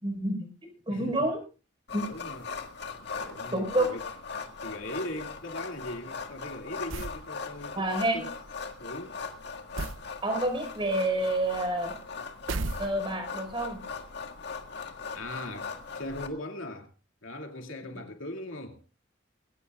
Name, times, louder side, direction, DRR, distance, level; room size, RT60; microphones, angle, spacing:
voice 1, 0.0-1.4 1.9-2.0 3.5-3.8 7.8-8.2 10.2-11.9 12.8-13.8, right 1 dB, 25° right, 5.0 m, -28 dB
voice 2, 0.9-1.3 2.0-2.6 3.0-4.1 4.6-7.9 8.1-8.4 8.8-9.2 15.1-15.7 15.9-16.9 17.2-18.8, left 1 dB, 85° left, 2.6 m, -39 dB
sound 1, 1.9-16.3, left 5 dB, 55° left, 1.8 m, -39 dB
sound 2, 6.9-7.3 9.8-10.1 12.5-13.3, right 3 dB, 80° right, 0.8 m, -34 dB
21.0 x 17.5 x 2.5 m
head